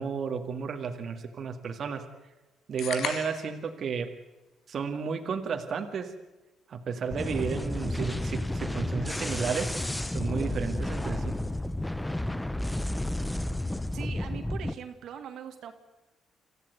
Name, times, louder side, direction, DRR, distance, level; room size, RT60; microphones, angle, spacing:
voice 1, 0.0-2.1 2.7-4.1 4.7-6.1 6.7-9.7 10.1-11.5, right 6 dB, 55° right, 5 dB, 2.0 m, -32 dB
sound 1, 2.8-3.6, left 7 dB, 70° left, 2.0 m, -35 dB
sound 2, 7.1-14.7, left 1 dB, 10° left, 0.9 m, -31 dB
voice 2, 13.9-15.7, right 8 dB, 75° right, 6 dB, 2.1 m, -41 dB
26.0 x 15.0 x 9.4 m, 1.1 s
cardioid pair, 90°, 0 cm